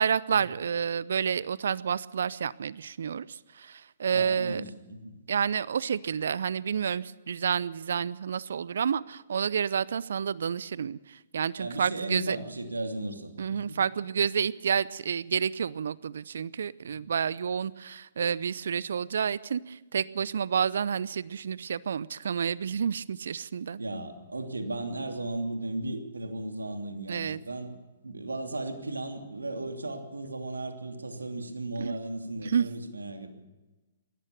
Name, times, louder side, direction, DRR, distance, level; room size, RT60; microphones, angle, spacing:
voice 1, 0.0-4.6 5.3-12.4 13.4-23.8 27.1-27.4 31.8-32.0 32.4-32.7, right 7 dB, 65° right, 20 dB, 0.6 m, -29 dB
voice 2, 4.1-5.2 11.6-13.8 23.8-27.7 28.0-33.4, right 2 dB, 80° right, 5 dB, 2.8 m, -36 dB
22.0 x 17.5 x 6.8 m, 1.1 s
figure-of-eight pair, 120°, 0 cm